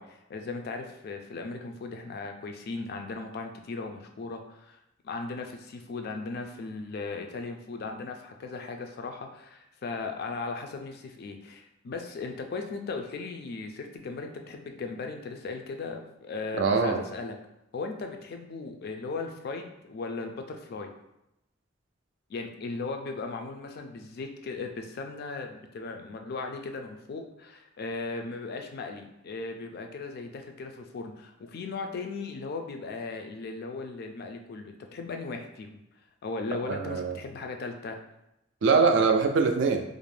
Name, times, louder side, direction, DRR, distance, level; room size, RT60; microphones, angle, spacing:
voice 1, 0.0-4.8 5.0-17.4 17.7-20.9 22.3-35.8 36.2-38.0, left 3 dB, 55° left, 5 dB, 0.3 m, -37 dB
voice 2, 16.6-17.0 36.7-37.1 38.6-39.8, right 4 dB, 65° right, 4 dB, 0.4 m, -23 dB
2.5 x 2.0 x 3.2 m, 0.87 s
head